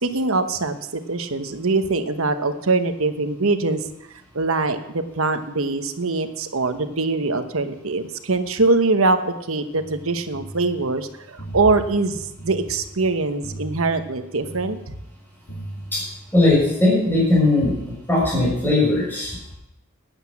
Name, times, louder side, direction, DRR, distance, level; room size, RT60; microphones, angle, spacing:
voice 1, 0.0-3.9 4.3-14.9, right 3 dB, 65° right, 9 dB, 1.1 m, -23 dB
sound 1, 9.8-16.6, right 1 dB, 65° left, 6.7 m, -39 dB
voice 2, 16.3-17.7 18.1-19.5, left 2 dB, 10° left, -5 dB, 6.1 m, -18 dB
12.0 x 9.9 x 7.2 m, 0.86 s
head